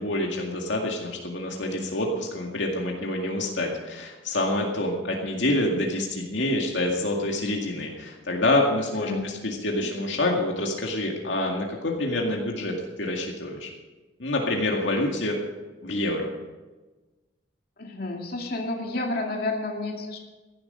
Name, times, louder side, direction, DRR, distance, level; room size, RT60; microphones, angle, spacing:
voice 1, 0.0-13.7 14.2-15.4 15.8-16.3, left 1 dB, 75° left, 0 dB, 2.1 m, -27 dB
voice 2, 8.9-9.3 9.7-9.9 17.8-20.2, left 2 dB, 50° left, 0 dB, 2.4 m, -30 dB
16.0 x 11.5 x 5.5 m, 1.2 s
head